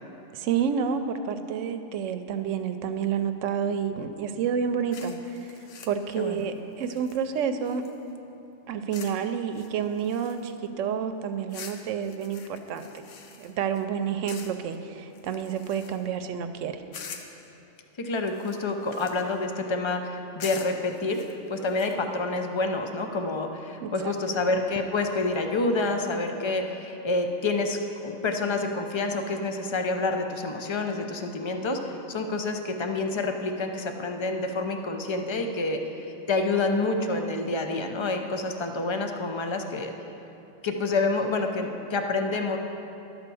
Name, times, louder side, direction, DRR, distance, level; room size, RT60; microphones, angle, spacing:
voice 1, 0.3-7.8 8.7-13.0 13.4-16.8 23.8-24.1, right 7 dB, 90° right, 9 dB, 0.9 m, -29 dB
sound 1, 4.9-8.1 8.9-9.2 9.5-10.7 11.5-13.8 14.3-14.8 15.1-16.2 16.9-17.4 18.2-19.4 20.4-21.9, left 6 dB, 85° left, 1.1 m, -45 dB
voice 2, 18.0-21.2 21.5-39.9 40.6-42.6, left 3 dB, 40° left, 4 dB, 0.4 m, -28 dB
11.5 x 4.3 x 6.9 m, 2.9 s
omnidirectional pair, 1.2 m